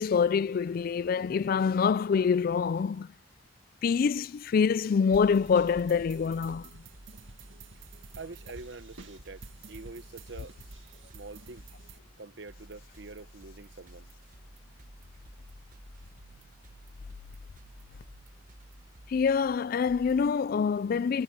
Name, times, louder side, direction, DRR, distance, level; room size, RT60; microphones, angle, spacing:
voice 1, 0.0-3.1 3.8-6.7 19.1-21.2, left 6 dB, 50° left, 0.3 m, -26 dB
sound 1, 5.1-20.3, right 1 dB, 45° right, 1.3 m, -53 dB
sound 2, 5.1-12.0, right 3 dB, 85° right, 1.9 m, -51 dB
voice 2, 8.2-10.5 11.1-11.6 12.2-14.1, right 3 dB, 65° right, 1.0 m, -45 dB
head